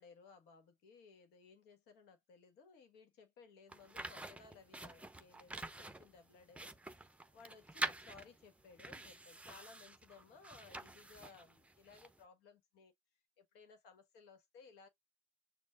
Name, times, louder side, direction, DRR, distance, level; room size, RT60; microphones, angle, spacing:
voice 1, 0.0-6.7 7.3-12.9 13.4-14.9, left 5 dB, 75° left, 1.5 m, -60 dB
sound 1, 3.7-12.2, right 2 dB, 5° right, 0.7 m, -47 dB
6.4 x 2.5 x 2.3 m
supercardioid pair, 85°, 17 cm